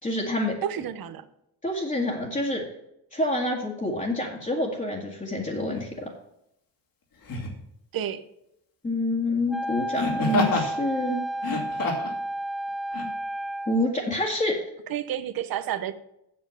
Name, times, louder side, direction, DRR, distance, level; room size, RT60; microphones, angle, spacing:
voice 1, 0.0-0.6 1.6-2.6 3.1-6.1 8.8-11.2 13.7-14.6, left 1 dB, 20° left, -3 dB, 1.8 m, -27 dB
voice 2, 0.6-1.3 7.9-8.2 14.9-16.0, right 10 dB, 60° right, 12 dB, 0.9 m, -30 dB
Laughter, 5.7-5.9 7.2-7.6 9.9-10.7 11.3-12.2 12.9-13.1, left 3 dB, 60° left, 2.4 m, -27 dB
Wind instrument woodwind instrument, 9.5-13.9, right 1 dB, ahead, 0.4 m, -32 dB
7.8 x 7.3 x 6.6 m, 0.80 s
cardioid pair, 125°, 39 cm